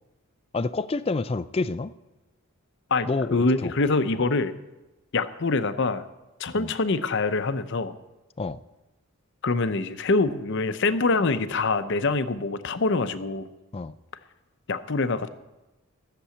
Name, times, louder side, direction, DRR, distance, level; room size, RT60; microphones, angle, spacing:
voice 1, 0.5-1.9 3.0-3.7 6.6-6.7 8.4-8.6 13.7-14.0, left 3 dB, 25° left, 0.4 m, -28 dB
voice 2, 2.9-4.5 5.1-6.0 6.4-7.9 9.4-13.5 14.7-15.3, left 3 dB, 55° left, 0.7 m, -25 dB
14.5 x 6.9 x 8.4 m
head